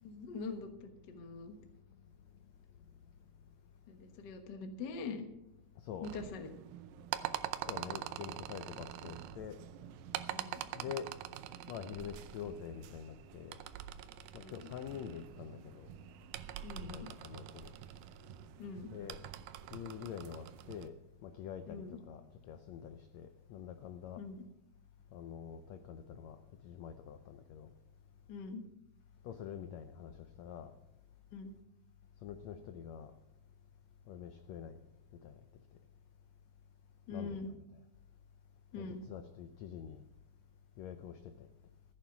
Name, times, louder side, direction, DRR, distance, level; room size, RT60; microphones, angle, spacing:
voice 1, 0.0-1.5 3.9-5.3 6.0-6.5 10.3-10.6 14.4-14.6 16.6-17.1 18.6-18.9 21.7-22.0 24.2-24.4 28.3-28.6 31.3-31.5 37.1-37.5 38.7-39.0, left 4 dB, 65° left, 6 dB, 1.0 m, -43 dB
sound 1, 6.0-20.9, right 12 dB, 90° right, 2.5 m, -45 dB
voice 2, 7.7-9.6 10.7-11.1 11.7-13.6 14.3-15.9 16.7-17.7 18.9-19.2 19.7-21.0 21.2-24.2 25.1-26.4 26.6-27.7 29.2-30.7 32.2-33.1 34.1-34.8 35.2-35.3 37.1-37.5 38.8-40.0 40.8-41.5, left 8 dB, 85° left, 9 dB, 1.5 m, -46 dB
14.5 x 9.0 x 5.8 m, 0.91 s
omnidirectional pair, 4.0 m